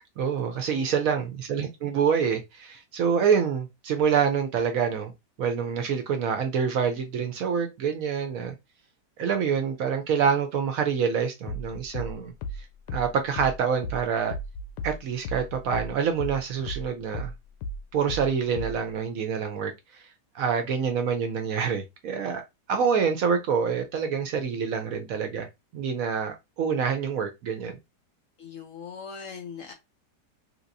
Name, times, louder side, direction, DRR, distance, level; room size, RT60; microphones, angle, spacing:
voice 1, 0.0-5.1 5.4-8.5 9.2-12.3 12.9-14.3 14.8-17.3 17.9-20.0 20.3-22.4 22.7-25.5 25.7-27.7, right 6 dB, 65° right, 0.9 m, -26 dB
voice 2, 0.7-1.0 28.4-29.7, left 6 dB, 70° left, 0.8 m, -41 dB
sound 1, 11.5-16.4 16.7-18.9, equal, 85° left, 1.2 m, -35 dB
3.4 x 2.9 x 2.5 m
omnidirectional pair, 1.8 m